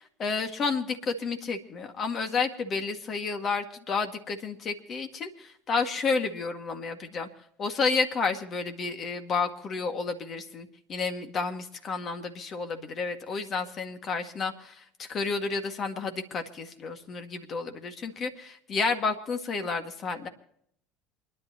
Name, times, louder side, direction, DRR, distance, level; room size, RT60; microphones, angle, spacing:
voice 1, 0.0-7.3 7.6-20.3, left 4 dB, 45° left, 6 dB, 2.0 m, -31 dB
28.5 x 11.0 x 3.0 m, 0.70 s
hypercardioid pair, 75°, 0 cm